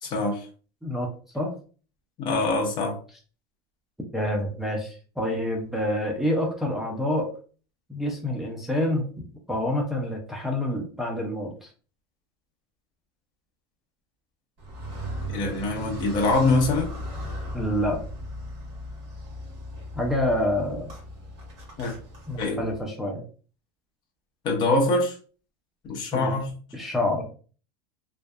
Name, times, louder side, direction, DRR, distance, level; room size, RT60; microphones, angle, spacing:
voice 1, 0.0-0.4 2.2-3.0 15.3-16.9 21.8-21.9 22.4-22.6 24.4-25.2 25.8-26.5, left 2 dB, 30° left, 0 dB, 0.6 m, -24 dB
voice 2, 4.1-7.3 7.9-9.1 9.5-11.7 17.5-18.0 20.0-20.9 22.3-23.2 26.1-26.3 26.7-27.2, left 1 dB, ahead, -1 dB, 0.3 m, -27 dB
Car, 14.6-22.8, equal, 40° right, 1.2 m, -37 dB
2.6 x 2.1 x 2.3 m, 0.39 s
supercardioid pair, 165°, 15 cm